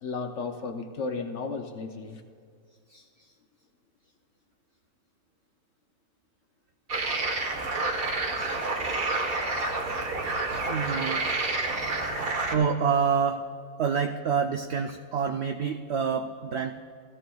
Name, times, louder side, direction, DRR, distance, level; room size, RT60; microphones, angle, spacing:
voice 1, 0.0-2.2, left 4 dB, 60° left, 6 dB, 0.9 m, -34 dB
sound 1, 6.9-12.5, right 2 dB, 40° right, 1.1 m, -29 dB
voice 2, 10.6-11.2 12.5-13.5 13.8-16.8, right 6 dB, 75° right, 6 dB, 0.6 m, -27 dB
16.5 x 14.0 x 2.3 m, 2.1 s
omnidirectional pair, 1.6 m